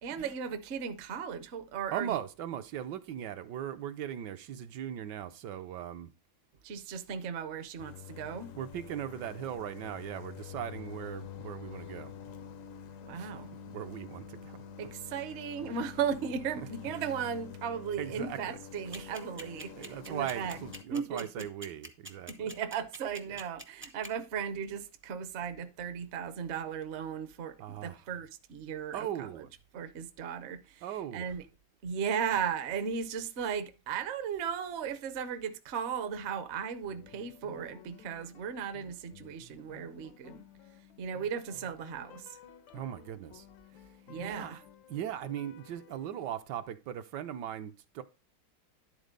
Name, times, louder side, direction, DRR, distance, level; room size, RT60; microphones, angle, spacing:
voice 1, 0.0-2.2 6.6-8.5 13.0-13.5 14.8-20.6 20.9-21.5 22.3-29.4 29.7-30.9 31.1-31.4 31.8-40.4 41.0-42.4 44.1-44.6, right 7 dB, 55° right, 0.8 m, -36 dB
voice 2, 1.9-6.1 8.6-12.1 13.2-13.3 13.7-14.6 15.1-15.2 16.6-16.9 18.0-18.6 18.8-19.2 19.7-22.5 23.2-23.4 27.6-28.1 28.9-29.5 30.8-31.3 42.7-43.5 44.2-44.6 44.9-48.0, right 10 dB, 70° right, 1.2 m, -39 dB
sound 1, 7.8-20.8, left 8 dB, 65° left, 0.8 m, -47 dB
sound 2, 18.9-24.1, right 1 dB, 15° right, 0.4 m, -43 dB
sound 3, 36.9-46.3, left 9 dB, 85° left, 1.5 m, -55 dB
10.5 x 4.0 x 5.1 m
omnidirectional pair, 2.0 m